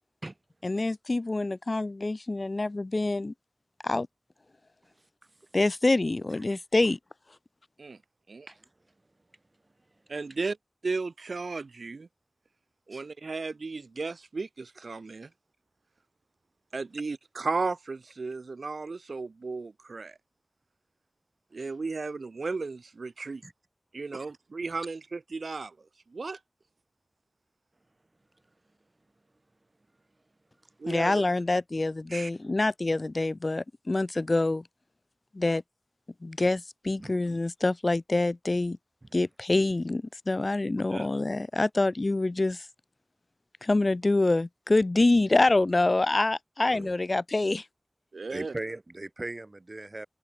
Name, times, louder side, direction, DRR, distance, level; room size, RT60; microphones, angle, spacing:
voice 1, 0.6-3.3 3.8-4.1 5.5-7.0 30.9-34.6 35.3-35.6 36.2-38.8 39.1-42.7 43.6-47.6, left 2 dB, 45° left, 0.9 m, -26 dB
voice 2, 6.3-6.9 8.5-8.7 12.9-13.1 23.4-23.5 24.1-24.3 37.0-37.2 46.7-46.9 48.3-50.1, right 2 dB, 40° right, 2.5 m, -39 dB
voice 3, 10.1-10.6 10.8-12.1 12.9-15.3 16.7-20.2 21.5-23.4 23.9-25.7 26.1-26.4 30.8-31.2 32.1-32.3 40.9-41.1 46.7-46.8 48.1-48.5, right 4 dB, 85° right, 0.9 m, -35 dB
open air
wide cardioid pair, 70°, 0 cm